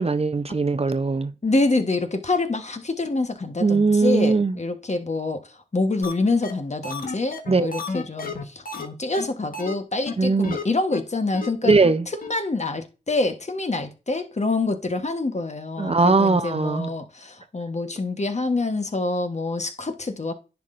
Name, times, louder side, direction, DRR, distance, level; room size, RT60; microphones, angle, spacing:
voice 1, 0.0-1.3 3.6-4.6 7.5-7.7 10.2-10.6 11.6-12.0 15.8-16.9, right 3 dB, 35° right, 0.6 m, -20 dB
voice 2, 1.4-5.4 5.7-11.8 12.1-20.3, left 3 dB, 40° left, 1.1 m, -26 dB
sound 1, 6.0-6.1 6.4-6.5 6.8-8.9 9.1-9.2 9.5-9.7 10.1-10.2 10.4-10.6 10.9-11.0 11.3-11.5 11.8-11.9 12.2-12.3, left 3 dB, 60° left, 1.4 m, -32 dB
10.5 x 5.8 x 2.6 m
cardioid pair, 45°, 17 cm